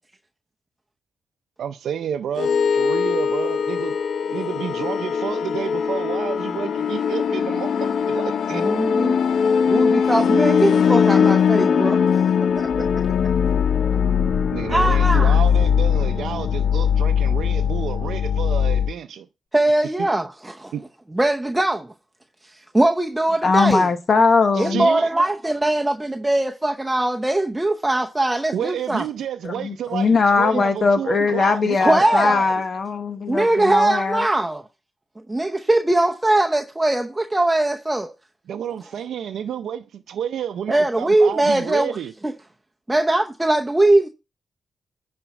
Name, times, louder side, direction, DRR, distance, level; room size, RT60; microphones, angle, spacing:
voice 1, 1.6-4.0 4.3-8.6 14.5-19.3 20.0-20.1 20.7-20.8 24.5-25.1 28.5-32.6 38.5-42.1, right 9 dB, 90° right, 0.5 m, -30 dB
sound 1, 2.4-18.9, left 7 dB, 70° left, 0.5 m, -20 dB
voice 2, 8.5-9.2 9.7-12.2 12.6-12.9 14.7-15.4 19.5-20.7 21.1-21.9 22.4-23.8 24.6-29.0 30.5-30.6 31.8-32.4 33.3-34.6 35.3-38.1 40.7-42.0 42.2-42.3 42.9-44.1, right 2 dB, 10° right, 0.7 m, -21 dB
voice 3, 23.4-24.9 29.4-34.3, left 4 dB, 45° left, 1.0 m, -20 dB
10.0 x 4.3 x 5.9 m
cardioid pair, 95°, 0 cm